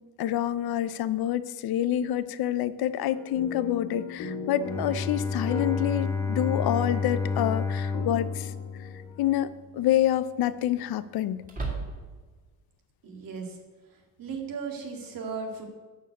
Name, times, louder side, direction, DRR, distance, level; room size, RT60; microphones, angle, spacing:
voice 1, 0.2-8.5 9.2-11.4, left 12 dB, 60° left, 15 dB, 0.7 m, -27 dB
sound 1, 3.1-9.4, left 5 dB, 80° left, 2.4 m, -39 dB
Bowed string instrument, 4.6-9.6, left 4 dB, 5° left, 1.5 m, -30 dB
sound 2, 8.8-9.2 9.5-9.6 11.4-12.3, right 3 dB, 20° right, 2.8 m, -35 dB
voice 2, 13.0-13.6 14.2-15.6, right 5 dB, 55° right, 2 dB, 2.3 m, -36 dB
11.5 x 4.7 x 8.3 m, 1.3 s
cardioid pair, 110°, 41 cm